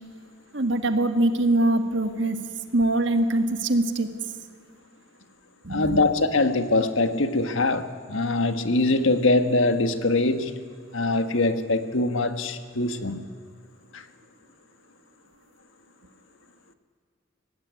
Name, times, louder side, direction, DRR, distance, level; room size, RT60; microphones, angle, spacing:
voice 1, 0.5-2.4 2.7-4.1 5.6-6.0, right 1 dB, 70° right, 8 dB, 1.7 m, -23 dB
voice 2, 5.7-10.6 10.9-13.2 13.9-14.0, left 2 dB, 85° left, 9 dB, 1.6 m, -23 dB
24.5 x 17.5 x 9.5 m, 2.1 s
head